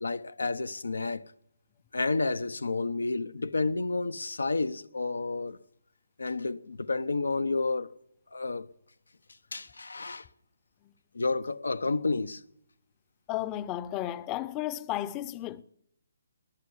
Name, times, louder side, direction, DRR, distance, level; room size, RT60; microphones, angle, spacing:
voice 1, 0.0-1.2 1.9-5.6 6.2-7.9 8.3-8.7 9.5-10.3 11.1-12.4, left 3 dB, 85° left, 0.7 m, -30 dB
voice 2, 13.3-15.6, left 13 dB, 20° left, 0.6 m, -33 dB
20.0 x 7.0 x 8.3 m
hypercardioid pair, 150°, 0 cm